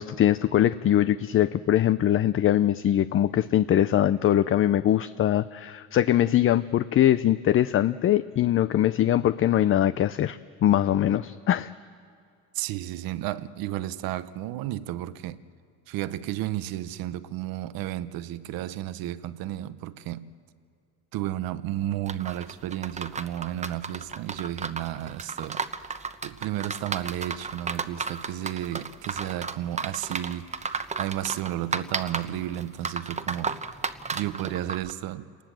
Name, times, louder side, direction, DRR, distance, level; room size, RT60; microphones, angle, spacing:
voice 1, 0.0-11.7, left 11 dB, 35° left, 0.5 m, -22 dB
voice 2, 12.5-15.4 15.9-20.3 21.1-25.6 26.2-33.5 34.1-35.3, right 13 dB, 75° right, 0.9 m, -32 dB
sound 1, 22.1-34.9, right 4 dB, 20° right, 1.0 m, -33 dB
28.0 x 19.5 x 7.6 m
cardioid pair, 115°, 36 cm